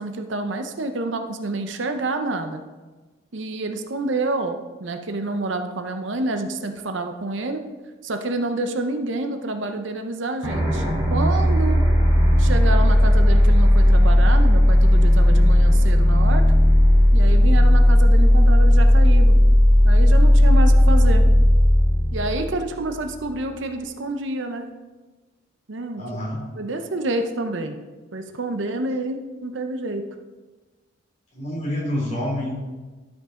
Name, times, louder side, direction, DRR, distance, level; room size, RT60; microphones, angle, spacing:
voice 1, 0.0-2.6 3.3-7.6 8.0-11.8 12.4-16.4 17.1-19.4 19.8-21.2 22.1-24.6 25.7-26.0 26.6-27.8 28.1-30.0, right 2 dB, 70° right, 6 dB, 0.7 m, -28 dB
sound 1, 10.4-23.1, left 1 dB, 15° right, 2.3 m, -15 dB
voice 2, 26.0-26.4 31.3-32.5, left 1 dB, 35° left, -4 dB, 3.0 m, -27 dB
12.0 x 5.4 x 3.7 m, 1.3 s
head